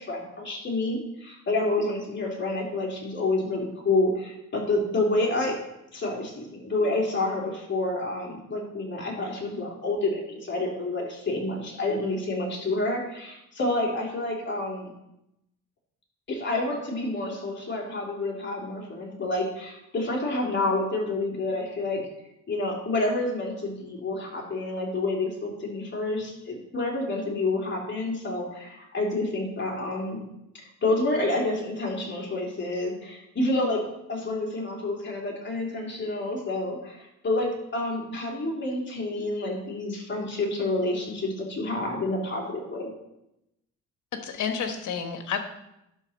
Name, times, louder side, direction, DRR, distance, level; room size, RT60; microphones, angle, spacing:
voice 1, 0.0-5.6 5.9-14.9 16.3-22.1 22.5-30.2 30.5-33.8 34.1-42.9, left 2 dB, 40° left, -2 dB, 3.2 m, -28 dB
voice 2, 44.1-45.4, left 7 dB, 75° left, 6 dB, 1.4 m, -30 dB
11.5 x 4.2 x 6.3 m, 0.85 s
cardioid pair, 90°, 30 cm